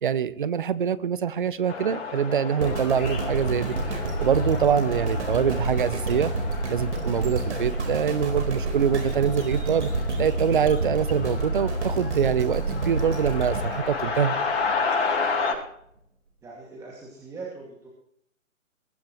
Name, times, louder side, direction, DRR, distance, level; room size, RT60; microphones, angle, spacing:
voice 1, 0.0-6.3 6.7-9.9 10.2-14.4, right 7 dB, 40° right, 16 dB, 0.9 m, -24 dB
sound 1, 1.7-15.5, left 4 dB, 45° left, 6.2 m, -32 dB
sound 2, 2.6-14.8 15.3-15.4, right 2 dB, 55° right, 4.4 m, -29 dB
voice 2, 16.4-17.9, right 4 dB, 5° right, -3 dB, 2.4 m, -41 dB
22.0 x 15.0 x 3.2 m, 0.68 s
figure-of-eight pair, 145°, 41 cm